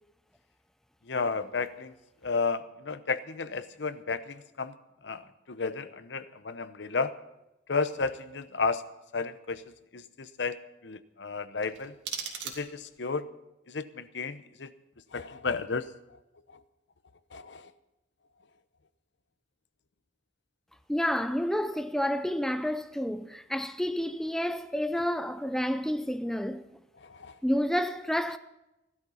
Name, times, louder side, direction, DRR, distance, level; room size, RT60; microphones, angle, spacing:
voice 1, 1.1-1.9 2.2-4.7 5.0-5.2 5.5-7.1 7.7-8.8 9.1-9.6 9.9-10.6 10.8-11.9 12.4-13.2 13.7-14.7 15.1-15.9 17.3-17.7 27.0-27.3, left 4 dB, 70° left, 0.9 m, -32 dB
sound 1, 11.6-13.1, right 6 dB, 75° right, 2.6 m, -39 dB
voice 2, 20.9-26.7 27.4-28.4, equal, ahead, 0.5 m, -29 dB
16.5 x 12.5 x 5.7 m
head